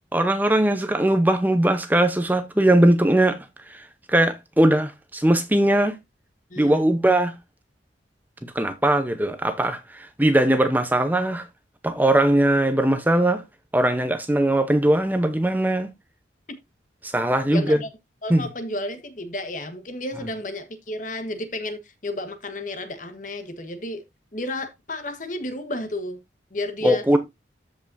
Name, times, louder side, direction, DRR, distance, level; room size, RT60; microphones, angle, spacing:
voice 1, 0.1-3.4 3.7-6.0 6.6-7.3 8.4-11.4 11.8-13.4 13.7-15.9 17.0-17.8 18.3-18.5 26.8-27.2, right 1 dB, 10° right, 0.7 m, -20 dB
voice 2, 6.5-6.8 17.5-17.9 18.2-24.0 24.3-26.2 26.5-27.0, left 1 dB, 45° left, 1.3 m, -32 dB
14.0 x 5.4 x 2.6 m
head